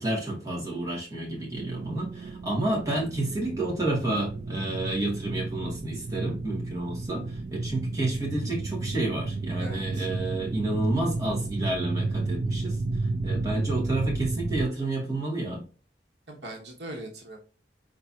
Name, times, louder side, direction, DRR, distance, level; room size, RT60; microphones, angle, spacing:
voice 1, 0.0-7.3 7.5-12.8 13.2-15.6, right 2 dB, 20° right, 2.3 m, -30 dB
sound 1, 1.6-14.7, right 3 dB, 40° right, 0.3 m, -32 dB
voice 2, 9.6-10.1 16.3-17.4, right 1 dB, 70° right, 1.1 m, -40 dB
4.5 x 3.8 x 2.8 m
head